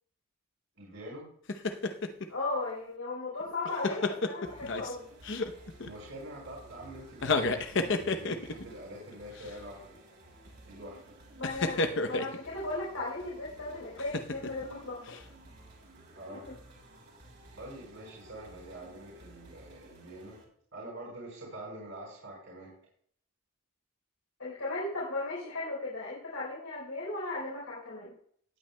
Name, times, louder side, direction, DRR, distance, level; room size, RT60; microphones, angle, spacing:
voice 1, 0.7-1.3 5.5-10.0 10.6-11.1 16.1-16.4 17.5-20.4 20.7-22.7, right 1 dB, 70° right, -5 dB, 4.8 m, -45 dB
sound 1, 1.5-2.3 3.4-5.0 5.2-5.9 7.1-8.7 9.4-9.5 11.4-12.4 14.0-14.6 15.1-15.2, left 3 dB, 55° left, 0.8 m, -31 dB
voice 2, 2.3-5.1 11.4-15.1 16.3-16.5 24.4-28.1, left 2 dB, 85° left, -6 dB, 4.0 m, -36 dB
sound 2, 4.4-20.4, right 1 dB, 50° right, 3.0 m, -54 dB
18.5 x 9.0 x 2.2 m, 0.62 s
head